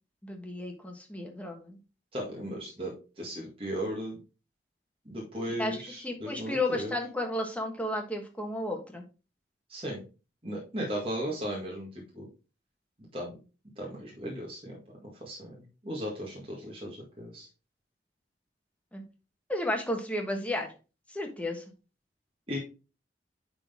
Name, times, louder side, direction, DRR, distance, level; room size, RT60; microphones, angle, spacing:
voice 1, 0.2-1.8 5.6-5.8 6.0-9.0 18.9-19.0 19.5-20.7 21.1-21.6, left 1 dB, 10° left, 3 dB, 1.3 m, -33 dB
voice 2, 2.1-4.2 5.1-6.9 9.7-10.0 10.4-11.9 12.1-12.3 13.1-13.3 13.8-15.5 15.8-17.5 22.5-22.6, equal, 30° right, -3 dB, 1.8 m, -36 dB
9.9 x 4.0 x 3.6 m, 0.32 s
head